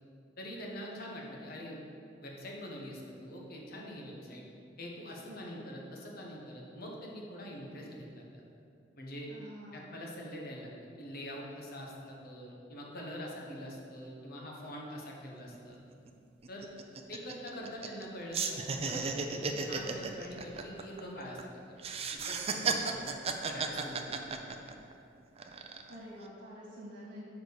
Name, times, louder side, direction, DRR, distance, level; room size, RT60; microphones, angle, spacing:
voice 1, 0.4-1.8 2.2-4.4 4.8-8.4 9.0-9.3 9.7-15.8 16.5-16.7 17.1-23.2 23.4-24.7, equal, 55° left, -2 dB, 1.3 m, -44 dB
voice 2, 5.3-5.7 9.3-9.9 25.9-27.2, equal, 70° right, -7 dB, 1.8 m, -48 dB
sound 1, 15.5-15.6 15.9-16.1 16.4-18.1 18.3-21.4 21.8-24.9 25.4-25.9, right 5 dB, 35° right, 0.5 m, -34 dB
6.7 x 4.6 x 6.7 m, 2.6 s
head